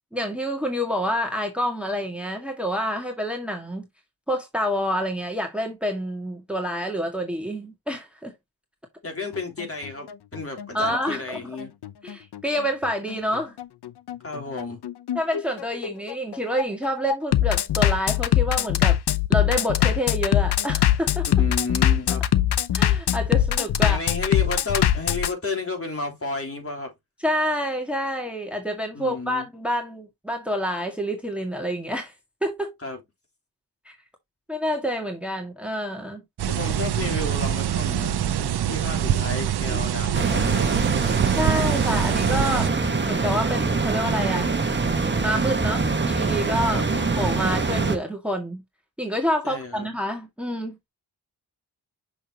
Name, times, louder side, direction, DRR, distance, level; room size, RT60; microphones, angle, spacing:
voice 1, 0.1-3.9 4.3-8.3 10.7-11.5 12.0-13.6 15.2-19.0 19.3-21.3 22.7-24.0 27.2-32.1 32.4-32.7 33.9-34.0 34.5-36.2 39.7-39.8 41.4-42.8 43.0-44.6 45.2-46.8 47.2-48.6 49.0-50.9, equal, 5° right, 1.8 m, -28 dB
voice 2, 9.0-11.7 14.2-14.8 21.4-22.2 23.8-26.9 28.9-29.5 32.8-33.0 36.5-40.9 46.7-47.2 49.4-49.9, left 3 dB, 35° left, 3.8 m, -32 dB
Bass drum, 9.3-25.3, left 11 dB, 80° left, 0.8 m, -22 dB
sound 1, 36.4-42.7, right 10 dB, 75° right, 0.8 m, -25 dB
sound 2, 40.1-48.0, right 4 dB, 30° right, 1.3 m, -24 dB
6.5 x 6.2 x 2.9 m
cardioid pair, 80°, 39 cm